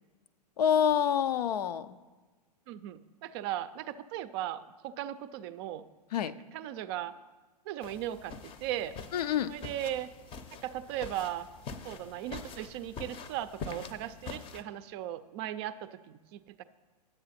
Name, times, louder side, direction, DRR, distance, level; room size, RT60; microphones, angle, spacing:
voice 1, 0.6-2.0 6.1-6.3 9.1-9.6, left 8 dB, 70° left, 14 dB, 0.5 m, -27 dB
voice 2, 2.7-5.8 6.2-7.1 7.7-9.0 9.5-10.1 10.6-11.5 11.8-16.6, right 12 dB, 40° right, 14 dB, 0.4 m, -37 dB
sound 1, 7.8-14.6, left 5 dB, 25° left, 0.7 m, -45 dB
10.0 x 8.0 x 4.2 m, 1.3 s
hypercardioid pair, 115°, 21 cm